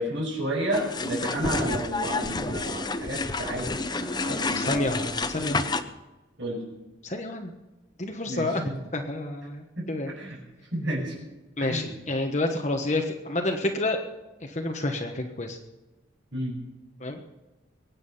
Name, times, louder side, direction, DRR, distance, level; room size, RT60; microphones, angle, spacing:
voice 1, 0.0-5.1 6.4-6.6 8.3-8.8 9.8-10.4 10.7-11.1 11.6-11.9 16.3-16.6, right 1 dB, 70° right, -8 dB, 6.0 m, -31 dB
sound 1, 0.7-5.8, left 3 dB, 20° left, 0.7 m, -29 dB
voice 2, 4.3-5.7 7.0-7.5 8.0-10.1 11.6-14.0 14.4-15.6 17.0-17.2, left 2 dB, 35° left, 4 dB, 1.2 m, -29 dB
22.5 x 9.6 x 5.6 m, 1.1 s
head